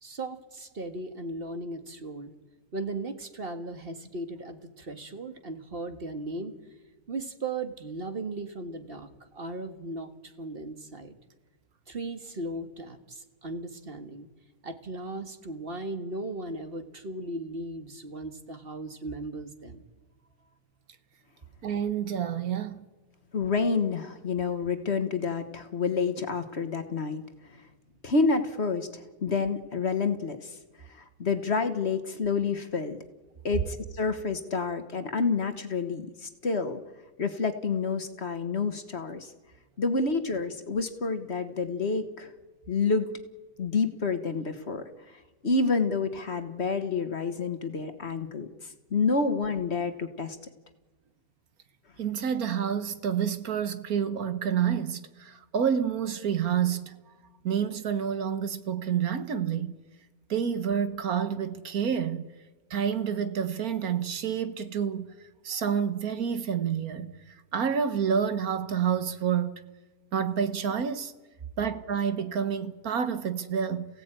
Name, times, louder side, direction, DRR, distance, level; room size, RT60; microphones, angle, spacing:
voice 1, 0.0-2.3 2.7-6.6 7.1-11.2 11.9-14.3 14.6-19.9, right 2 dB, 40° right, 1.9 m, -37 dB
voice 2, 21.6-22.8 52.0-57.0 57.4-59.7 60.3-62.3 62.7-65.1 65.4-67.1 67.5-69.6 70.1-71.1 71.6-73.9, right 8 dB, 75° right, 1.6 m, -28 dB
voice 3, 23.3-27.2 28.0-30.5 31.2-33.0 33.4-36.8 37.2-39.3 39.8-42.3 42.7-43.1 43.6-44.8 45.4-48.5 48.9-50.4, left 4 dB, 45° left, 1.6 m, -28 dB
28.5 x 16.5 x 9.0 m
omnidirectional pair, 1.6 m